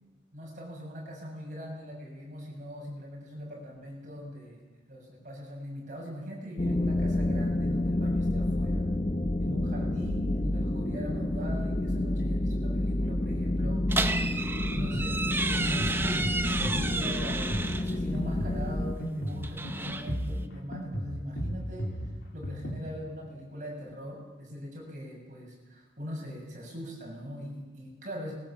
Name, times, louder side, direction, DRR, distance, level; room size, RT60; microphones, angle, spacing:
voice 1, 0.3-4.6 4.9-8.9 9.4-13.8 14.7-21.9 22.3-28.3, equal, 45° right, -2 dB, 7.4 m, -41 dB
sound 1, 6.6-18.9, left 1 dB, 30° left, 1.0 m, -29 dB
sound 2, 13.9-18.0 19.3-20.4, right 3 dB, 10° right, 0.8 m, -32 dB
Drum kit, 14.5-22.8, equal, 80° left, 3.0 m, -36 dB
21.5 x 19.5 x 7.5 m, 1.3 s
head